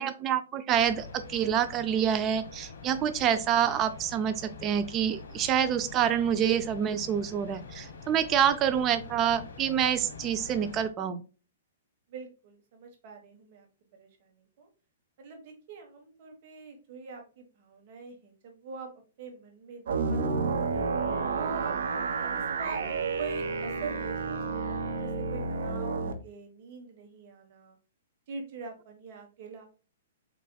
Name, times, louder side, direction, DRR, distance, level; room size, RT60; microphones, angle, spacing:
voice 1, 0.0-11.2, right 9 dB, 20° right, 12 dB, 0.3 m, -27 dB
sound 1, 0.7-10.9, left 4 dB, 80° left, 1.6 m, -45 dB
voice 2, 8.7-9.2 12.1-13.7 13.9-14.7 15.2-18.9 19.2-20.9 21.4-22.8 23.2-27.8 28.3-29.7, right 5 dB, 40° right, 3 dB, 1.2 m, -44 dB
sound 2, 19.9-26.1, right 4 dB, 75° right, 0.8 m, -30 dB
4.1 x 4.1 x 2.2 m, 0.35 s
hypercardioid pair, 165°, 0 cm